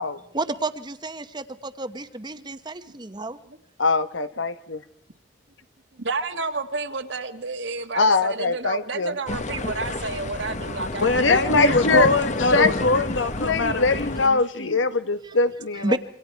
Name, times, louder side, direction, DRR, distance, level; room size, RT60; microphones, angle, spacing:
voice 1, 0.3-3.4 15.2-15.3 15.7-16.0, right 2 dB, 25° right, 11 dB, 1.1 m, -30 dB
voice 2, 3.8-4.8 8.0-9.1 11.2-12.1 12.5-12.7 13.4-16.0, left 3 dB, 90° left, 12 dB, 1.2 m, -22 dB
voice 3, 6.0-11.6, right 3 dB, 70° right, 7 dB, 1.8 m, -31 dB
sound 1, 9.3-14.3, left 2 dB, 40° left, 1.2 m, -30 dB
voice 4, 11.0-14.8, left 3 dB, 65° left, 8 dB, 1.8 m, -23 dB
27.5 x 24.0 x 4.6 m, 0.66 s
head